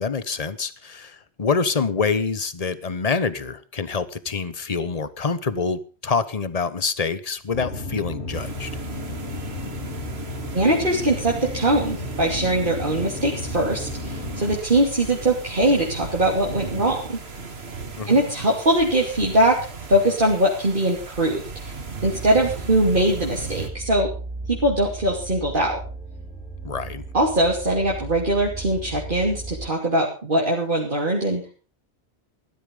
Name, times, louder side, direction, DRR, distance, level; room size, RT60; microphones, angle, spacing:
voice 1, 0.0-8.7 18.0-18.2 26.6-27.0, left 5 dB, 35° left, 15 dB, 1.1 m, -26 dB
sound 1, 7.5-14.6, left 1 dB, 85° left, 4.4 m, -32 dB
sound 2, 8.3-23.7, right 4 dB, 70° right, 2.0 m, -37 dB
voice 2, 10.5-17.2 18.1-19.6 19.9-21.7 22.0-24.1 24.5-25.8 27.1-31.6, right 1 dB, 50° right, -2 dB, 3.0 m, -21 dB
sound 3, 22.0-29.7, right 2 dB, 5° right, 3.8 m, -36 dB
15.5 x 12.0 x 5.4 m, 0.37 s
omnidirectional pair, 1.1 m